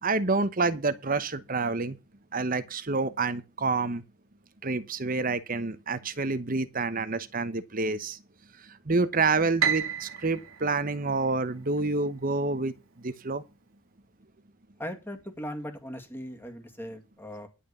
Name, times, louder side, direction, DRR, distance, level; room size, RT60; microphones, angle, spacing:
voice 1, 0.0-2.0 2.3-4.0 4.6-8.2 8.6-13.4, right 3 dB, 40° right, 1.0 m, -28 dB
Piano, 9.6-11.9, right 8 dB, 85° right, 2.0 m, -31 dB
voice 2, 14.8-17.5, equal, 10° left, 2.1 m, -39 dB
11.0 x 6.2 x 6.9 m
head